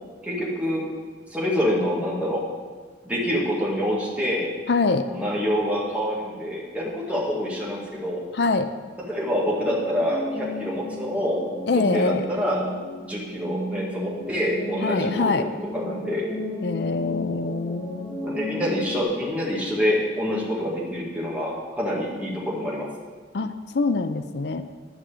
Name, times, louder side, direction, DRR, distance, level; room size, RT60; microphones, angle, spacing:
voice 1, 0.2-0.8 1.3-2.4 3.0-4.5 5.0-8.2 9.1-11.4 11.7-12.6 13.0-16.2 18.2-22.8, equal, 5° right, -5 dB, 2.0 m, -26 dB
voice 2, 4.7-5.1 8.3-8.7 11.7-12.3 14.8-15.5 16.6-18.2 23.3-24.6, left 3 dB, 65° left, 10 dB, 0.5 m, -24 dB
sound 1, 9.6-19.0, equal, 15° left, 1.3 m, -34 dB
10.5 x 6.3 x 6.9 m, 1.5 s
head